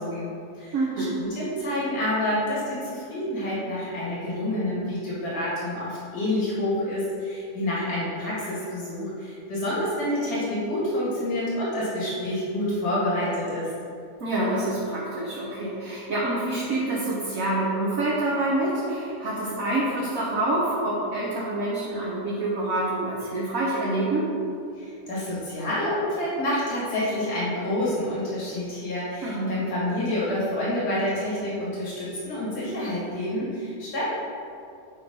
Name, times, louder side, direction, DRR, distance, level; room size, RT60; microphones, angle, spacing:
voice 1, 0.0-13.7 24.8-34.0, left 1 dB, 70° left, -7 dB, 2.3 m, -28 dB
voice 2, 0.7-1.2 14.2-24.2 29.2-29.6, right 2 dB, 60° right, -7 dB, 1.4 m, -26 dB
9.0 x 3.1 x 5.2 m, 2.4 s
omnidirectional pair, 1.8 m